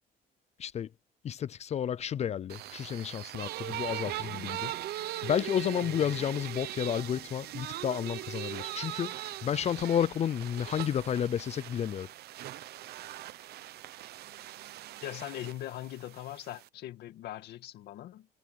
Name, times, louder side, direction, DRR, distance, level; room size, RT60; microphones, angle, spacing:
voice 1, 1.2-4.7 5.2-12.1, left 9 dB, 40° left, 0.5 m, -31 dB
sound 1, 2.5-16.7, right 14 dB, 70° right, 1.0 m, -40 dB
voice 2, 15.0-18.3, left 14 dB, 75° left, 2.3 m, -41 dB
cardioid pair, 110°, 17 cm